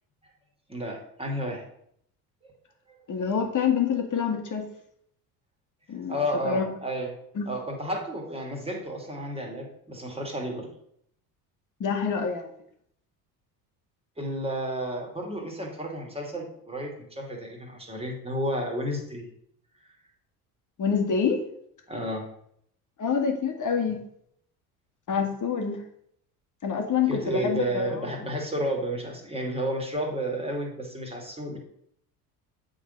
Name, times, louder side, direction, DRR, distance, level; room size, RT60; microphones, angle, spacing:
voice 1, 0.7-1.6 2.4-2.5 6.1-7.1 7.5-10.7 14.2-19.3 21.9-22.3 27.1-31.6, equal, 10° right, 1 dB, 2.4 m, -32 dB
voice 2, 3.1-4.7 5.9-6.7 7.3-7.5 11.8-12.5 20.8-21.4 23.0-24.0 25.1-25.8 26.6-28.1, left 6 dB, 40° left, 4 dB, 1.7 m, -26 dB
8.2 x 3.9 x 5.2 m, 0.71 s
hypercardioid pair, 65°, 47 cm